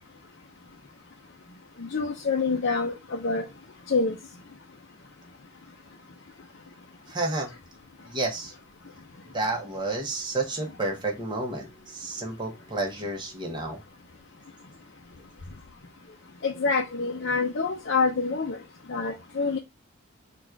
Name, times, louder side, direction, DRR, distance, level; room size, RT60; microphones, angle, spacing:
voice 1, 1.8-3.4 3.9-4.1 16.4-18.6 18.9-19.6, left 4 dB, 55° left, 0.6 m, -26 dB
voice 2, 7.1-7.5 8.1-8.5 9.3-13.8, right 2 dB, 20° right, 1.0 m, -30 dB
4.0 x 2.4 x 4.5 m
head